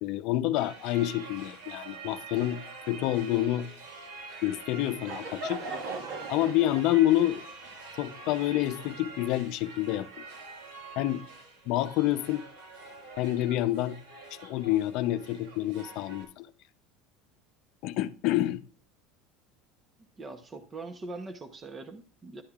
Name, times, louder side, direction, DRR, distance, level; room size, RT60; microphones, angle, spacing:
voice 1, 0.0-2.6 2.9-3.7 4.4-5.6 6.3-7.4 8.0-10.2 11.0-11.2 11.7-12.4 13.2-14.0 14.3-16.5 17.8-18.6, left 14 dB, 60° left, 0.6 m, -28 dB
sound 1, 0.5-16.2, right 4 dB, 80° right, 4.3 m, -46 dB
Laughter / Crowd, 4.6-9.3, right 3 dB, 65° right, 1.5 m, -40 dB
voice 2, 20.2-22.4, right 3 dB, 25° right, 0.8 m, -42 dB
11.5 x 8.5 x 2.4 m
supercardioid pair, 130°, 0 cm